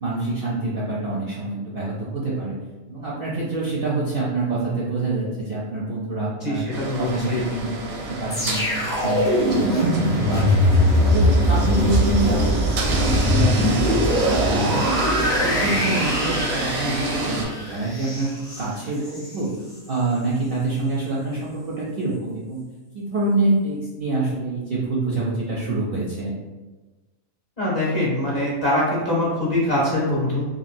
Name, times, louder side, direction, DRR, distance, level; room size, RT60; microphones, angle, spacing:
voice 1, 0.0-2.6 2.9-6.7 7.0-10.6 11.0-14.8 15.2-19.5 19.9-22.6 22.9-26.3, right 2 dB, 60° right, -6 dB, 0.6 m, -26 dB
voice 2, 6.4-7.5 27.6-30.5, left 1 dB, 35° left, -7 dB, 0.8 m, -23 dB
sound 1, 6.7-17.4, right 2 dB, 80° right, 1.0 m, -29 dB
sound 2, 8.3-19.4 19.7-20.0, equal, 5° left, 0.4 m, -21 dB
3.0 x 2.4 x 2.5 m, 1.2 s
omnidirectional pair, 1.4 m